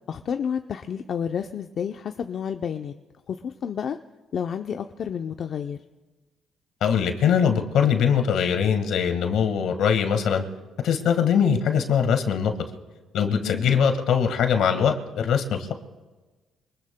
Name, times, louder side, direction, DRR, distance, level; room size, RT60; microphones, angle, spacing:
voice 1, 0.1-2.9 3.3-4.0 4.3-5.8 13.3-13.6, left 7 dB, 60° left, 6 dB, 0.5 m, -30 dB
voice 2, 6.8-10.4 10.8-12.5 13.1-15.7, left 7 dB, 80° left, 6 dB, 1.6 m, -22 dB
26.0 x 20.0 x 2.2 m, 1.2 s
cardioid pair, 90°, 0 cm